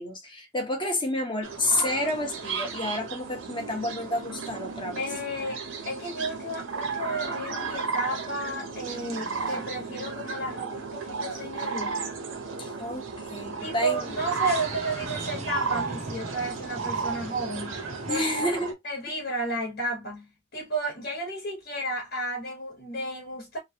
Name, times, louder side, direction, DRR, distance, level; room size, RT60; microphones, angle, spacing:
voice 1, 0.0-5.0 12.6-13.1 13.3-14.0 18.1-18.8, left 1 dB, 25° left, 1.0 m, -29 dB
sound 1, 1.4-18.7, right 4 dB, 85° right, 0.9 m, -34 dB
voice 2, 5.0-12.1 13.6-17.8 18.1-18.3 18.8-23.6, right 2 dB, 55° left, 1.3 m, -32 dB
sound 2, 9.1-18.2, right 2 dB, 35° right, 0.7 m, -42 dB
3.2 x 2.3 x 2.7 m
head